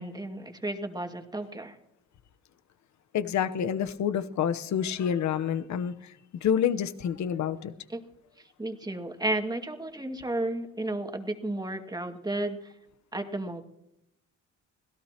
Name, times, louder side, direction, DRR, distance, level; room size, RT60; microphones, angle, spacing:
voice 1, 0.0-1.8 7.9-8.0 8.4-12.7 13.1-13.6, right 1 dB, 15° right, 2.2 m, -33 dB
voice 2, 3.1-6.1 6.4-7.7, left 8 dB, 70° left, 1.1 m, -28 dB
26.0 x 17.0 x 3.0 m
cardioid pair, 90°, 30 cm